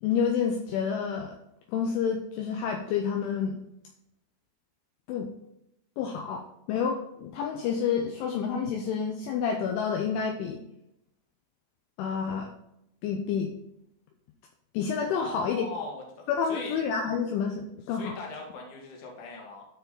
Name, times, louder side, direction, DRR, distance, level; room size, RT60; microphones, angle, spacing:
voice 1, 0.0-1.4 1.7-3.6 5.1-5.3 6.0-10.6 12.0-12.5 13.0-13.5 14.7-15.7 16.3-18.2, left 6 dB, 80° left, 2 dB, 3.0 m, -29 dB
voice 2, 15.1-16.8 17.9-19.7, left 2 dB, 50° left, -1 dB, 2.9 m, -40 dB
13.0 x 4.8 x 4.0 m, 0.81 s
omnidirectional pair, 5.9 m